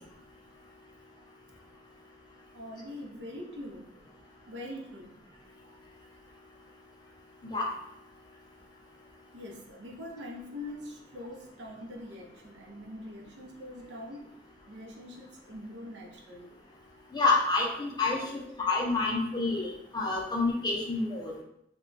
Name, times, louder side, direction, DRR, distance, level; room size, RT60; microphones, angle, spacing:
voice 1, 2.5-3.9 4.5-5.8 9.3-16.6 17.0-17.1 18.4-18.7, left 1 dB, 80° right, -1 dB, 0.5 m, -44 dB
voice 2, 17.1-18.2 18.6-21.3, left 3 dB, 25° left, -1 dB, 0.5 m, -28 dB
2.1 x 2.1 x 3.8 m, 0.76 s
head